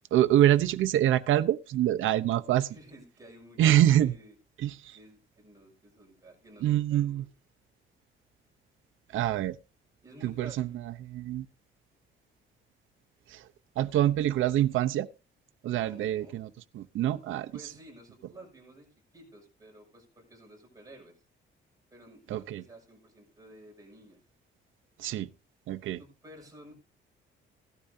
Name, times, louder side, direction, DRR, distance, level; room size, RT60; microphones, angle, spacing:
voice 1, 0.1-2.7 3.6-4.1 4.6-5.0 6.6-7.2 9.1-9.6 10.2-11.5 13.3-13.4 13.8-15.1 15.6-16.5 16.7-17.5 22.3-22.6 25.0-25.3 25.7-26.0, right 12 dB, 75° right, 0.8 m, -25 dB
voice 2, 2.7-4.4 4.9-7.3 10.0-10.8 15.7-16.4 17.5-21.1 21.9-24.2 26.0-26.7, right 1 dB, 15° right, 6.5 m, -53 dB
17.0 x 12.0 x 2.7 m
cardioid pair, 150°, 20 cm